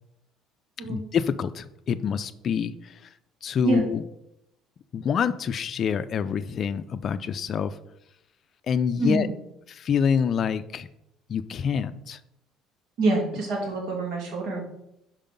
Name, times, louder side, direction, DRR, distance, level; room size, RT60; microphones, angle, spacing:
voice 1, 0.8-2.7 3.4-4.0 4.9-7.7 8.7-9.3 9.7-10.9 11.3-12.2, left 7 dB, 40° left, 13 dB, 0.4 m, -26 dB
voice 2, 9.0-9.3 13.0-14.6, right 2 dB, 70° right, -1 dB, 2.4 m, -25 dB
5.6 x 4.7 x 5.2 m, 0.81 s
cardioid pair, 130°, 0 cm